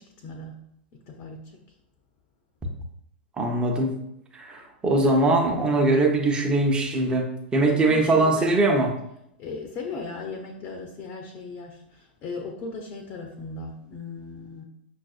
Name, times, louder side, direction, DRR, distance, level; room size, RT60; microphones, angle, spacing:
voice 1, 0.2-0.6 0.9-1.6 7.9-8.5 9.4-14.6, left 3 dB, 35° left, 2 dB, 0.6 m, -37 dB
voice 2, 3.4-4.0 4.3-8.9, right 2 dB, 15° right, 1 dB, 0.8 m, -22 dB
5.8 x 2.6 x 2.4 m, 0.78 s
figure-of-eight pair, 105°, 6 cm